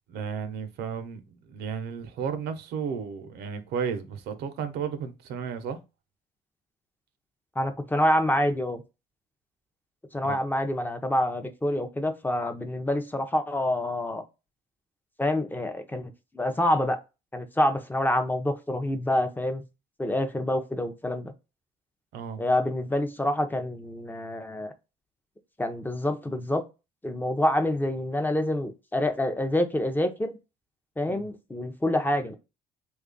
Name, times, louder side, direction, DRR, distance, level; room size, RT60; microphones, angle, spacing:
voice 1, 0.1-5.8 10.2-10.4 22.1-22.4 31.1-31.3, right 6 dB, 75° right, 0.7 m, -33 dB
voice 2, 7.6-8.8 10.1-14.2 15.2-17.0 17.3-19.6 20.0-21.3 22.4-24.7 25.6-26.6 27.0-30.4 31.0-32.3, left 1 dB, 10° left, 0.5 m, -27 dB
3.2 x 2.4 x 3.7 m
cardioid pair, 110°, 17 cm